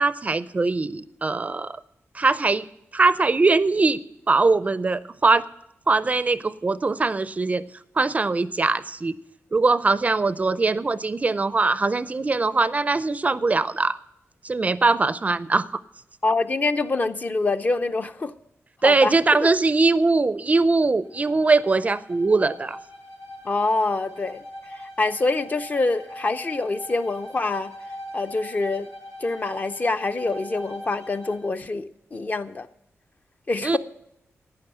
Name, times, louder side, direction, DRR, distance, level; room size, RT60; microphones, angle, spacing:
voice 1, 0.0-1.8 2.1-2.6 2.9-4.0 4.3-5.4 5.9-7.6 8.0-9.1 9.5-14.0 14.4-15.7 18.8-22.8 33.6-33.8, right 3 dB, 30° right, 0.4 m, -21 dB
voice 2, 16.2-18.3 18.8-19.2 23.4-27.7 28.1-28.9 29.2-32.7 33.5-33.8, left 3 dB, 35° left, 0.5 m, -25 dB
Bowed string instrument, 21.0-31.5, equal, 80° left, 3.1 m, -41 dB
11.5 x 9.5 x 7.8 m
wide cardioid pair, 135°, 5 cm